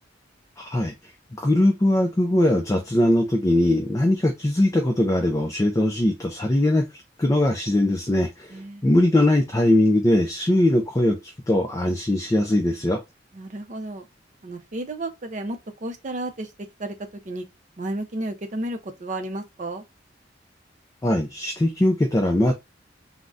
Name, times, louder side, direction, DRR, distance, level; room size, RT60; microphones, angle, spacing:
voice 1, 0.6-0.9 1.4-6.9 7.2-13.0 21.0-22.5, left 1 dB, 15° left, 0.4 m, -21 dB
voice 2, 8.5-8.9 13.3-14.1 14.4-16.5 16.8-17.0 17.3-17.5 17.8-19.8, right 1 dB, 40° right, 0.5 m, -32 dB
3.7 x 2.1 x 2.4 m
head